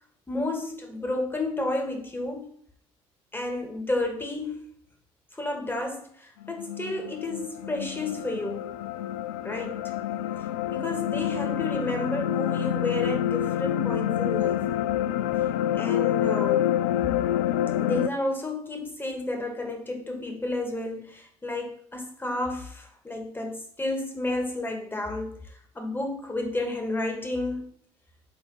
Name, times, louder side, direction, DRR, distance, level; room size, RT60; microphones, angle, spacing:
voice 1, 0.3-2.4 3.3-4.6 5.3-8.7 9.4-9.9 10.4-14.6 15.7-16.7 17.8-27.7, left 2 dB, 15° left, 2 dB, 2.4 m, -31 dB
sound 1, 6.4-18.1, left 12 dB, 75° left, 0.4 m, -27 dB
8.3 x 3.6 x 5.8 m, 0.62 s
hypercardioid pair, 55°, 14 cm